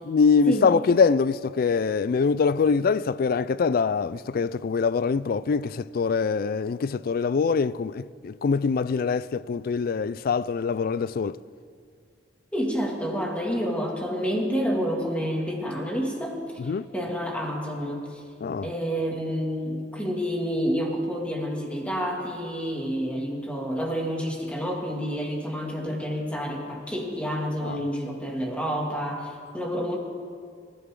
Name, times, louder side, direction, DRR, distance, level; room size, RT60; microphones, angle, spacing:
voice 1, 0.1-11.4 16.6-16.9 18.4-18.7 27.6-27.8, left 5 dB, 55° left, 0.4 m, -24 dB
voice 2, 12.5-16.4 16.9-18.2 18.6-30.0, equal, 5° left, 2.2 m, -29 dB
24.5 x 14.5 x 3.8 m
head